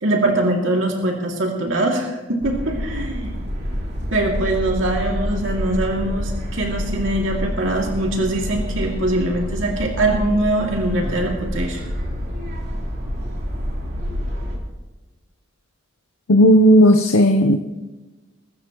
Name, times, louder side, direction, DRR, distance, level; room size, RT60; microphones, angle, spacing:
voice 1, 0.0-3.4 4.1-11.8, right 1 dB, 65° right, 0 dB, 2.6 m, -22 dB
sound 1, 2.4-14.6, equal, 50° right, 3.3 m, -27 dB
voice 2, 16.3-17.6, equal, 90° left, 6 dB, 0.8 m, -13 dB
23.0 x 13.0 x 3.1 m, 1.2 s
head